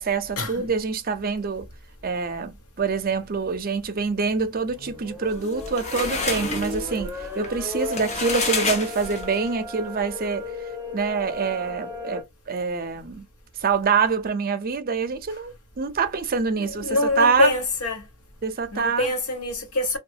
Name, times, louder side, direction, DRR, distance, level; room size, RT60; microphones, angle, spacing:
voice 1, 0.0-1.7 2.0-10.5 10.9-13.3 13.6-17.5 18.4-19.1, right 5 dB, 40° right, 0.5 m, -25 dB
sound 1, 4.5-12.2, left 2 dB, 10° right, 0.8 m, -35 dB
sound 2, 5.3-9.5, left 3 dB, 30° left, 0.7 m, -29 dB
voice 2, 16.6-18.0 18.7-20.0, left 2 dB, 80° left, 1.0 m, -24 dB
3.0 x 2.2 x 2.7 m
head